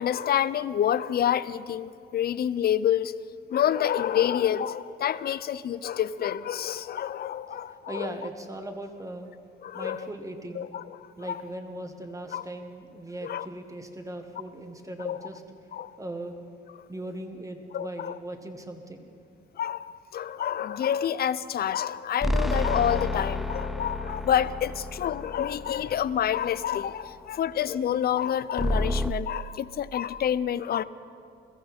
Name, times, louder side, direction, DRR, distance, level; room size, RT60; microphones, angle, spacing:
voice 1, 0.0-3.1 3.5-8.1 9.6-10.1 10.5-11.4 12.3-12.4 13.2-13.5 15.0-15.2 15.7-16.0 17.7-18.2 19.6-30.8, left 10 dB, 50° left, 16 dB, 0.5 m, -28 dB
voice 2, 7.7-9.3 9.7-10.7 11.2-15.4 16.0-16.4 16.9-19.1, right 1 dB, 15° right, 5 dB, 1.6 m, -39 dB
sound 1, 22.2-26.7 28.6-29.1, left 1 dB, ahead, 0.4 m, -30 dB
22.5 x 14.0 x 4.3 m, 2.4 s
cardioid pair, 90°, 20 cm